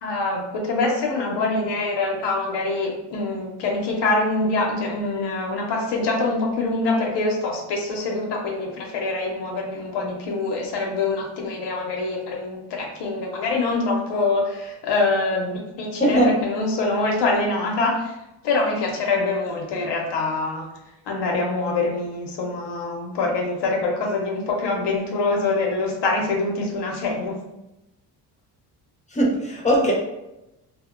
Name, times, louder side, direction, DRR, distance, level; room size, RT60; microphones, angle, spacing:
voice 1, 0.0-18.2 18.4-20.7 21.1-27.4, left 3 dB, 75° left, 0 dB, 0.7 m, -24 dB
voice 2, 29.1-29.9, equal, 15° left, -2 dB, 0.7 m, -19 dB
2.7 x 2.0 x 2.4 m, 0.91 s
cardioid pair, 90°, 41 cm